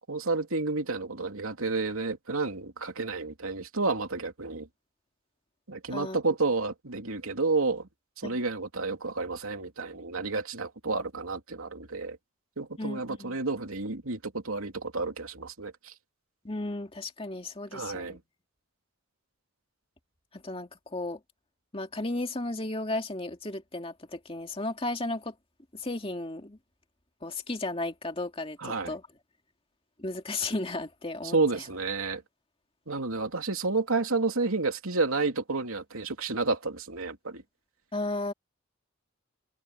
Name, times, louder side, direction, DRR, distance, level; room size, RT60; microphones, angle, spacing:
voice 1, 0.1-4.7 5.7-7.9 8.2-12.2 12.6-15.9 17.7-18.2 28.6-28.9 31.3-32.2 32.9-37.4, right 3 dB, 85° right, 2.9 m, -30 dB
voice 2, 12.8-13.4 16.4-18.2 20.3-21.2 21.7-25.3 25.7-26.6 27.2-29.0 30.0-31.6 37.9-38.3, left 2 dB, 25° left, 2.3 m, -34 dB
head